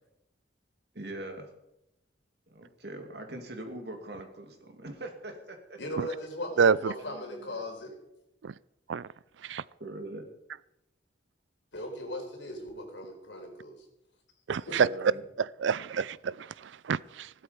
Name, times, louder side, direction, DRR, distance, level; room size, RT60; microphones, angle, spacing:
voice 1, 0.9-1.5 2.5-5.8 7.0-7.2 9.8-10.2 14.7-15.2, right 1 dB, 60° right, 4 dB, 2.4 m, -41 dB
voice 2, 5.8-8.0 11.7-13.8 14.7-14.8, left 1 dB, 80° left, 1 dB, 4.4 m, -38 dB
voice 3, 6.6-6.9 8.4-8.5 8.9-9.1 9.4-9.6 14.5-14.9 15.6-17.3, right 6 dB, 85° right, 21 dB, 0.4 m, -27 dB
16.0 x 12.5 x 5.2 m, 0.84 s
head